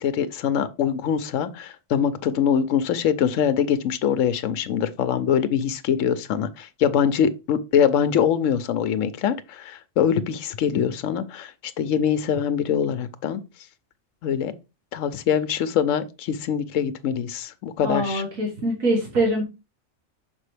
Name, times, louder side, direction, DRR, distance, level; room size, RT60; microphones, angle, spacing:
voice 1, 0.0-11.5 11.8-13.4 14.2-14.5 14.9-18.2, left 8 dB, 75° left, 1.0 m, -23 dB
voice 2, 17.8-19.4, right 1 dB, 90° right, 2.1 m, -23 dB
6.2 x 5.2 x 3.3 m
omnidirectional pair, 1.4 m